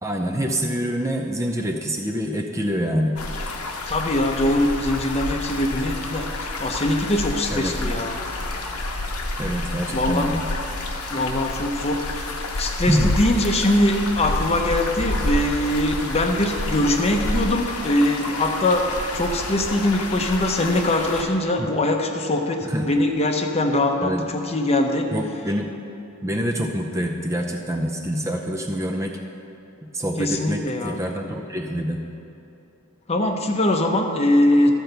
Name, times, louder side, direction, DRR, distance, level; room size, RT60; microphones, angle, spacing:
voice 1, 0.0-3.2 7.5-7.8 9.4-10.5 12.9-13.1 21.6-21.7 22.6-22.9 24.0-24.2 25.1-25.7 26.2-29.2 29.9-32.0, equal, 15° right, 2 dB, 0.5 m, -26 dB
sound 1, 3.2-21.2, left 2 dB, 90° left, 1.0 m, -29 dB
voice 2, 3.9-8.1 9.9-10.3 11.1-12.3 12.6-25.1 30.2-30.9 33.1-34.7, left 1 dB, 30° left, 3 dB, 0.7 m, -22 dB
13.0 x 4.5 x 6.7 m, 2.8 s
head